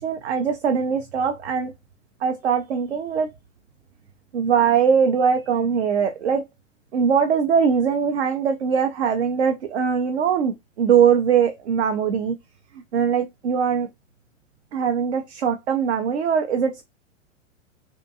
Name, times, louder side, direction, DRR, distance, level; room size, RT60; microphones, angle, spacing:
voice 1, 0.0-1.7 2.2-3.3 4.3-6.4 6.9-12.4 12.9-13.9 14.7-16.8, right 7 dB, 60° right, 0.5 m, -21 dB
2.6 x 2.1 x 2.5 m
figure-of-eight pair, 105°, 38 cm